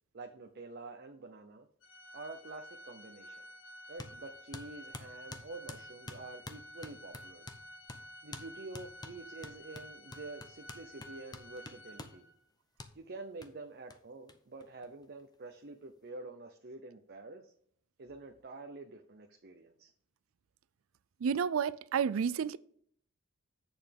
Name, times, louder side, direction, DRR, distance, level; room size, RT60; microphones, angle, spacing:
voice 1, 0.1-1.7 2.1-3.4 3.9-7.5 8.2-12.2 12.9-17.5 18.0-19.9, right 3 dB, 50° right, 0.7 m, -48 dB
Organ, 1.8-12.4, equal, 75° left, 1.7 m, -52 dB
sound 1, 4.0-4.2 4.5-7.6 7.9-8.0 8.3-8.5 8.7-12.2 12.8-12.9 13.4-13.5 13.9-14.0 14.3-14.4 14.6-15.3, left 2 dB, 20° left, 0.8 m, -47 dB
voice 2, 21.2-22.6, right 7 dB, 80° right, 0.4 m, -30 dB
8.0 x 6.9 x 3.5 m
head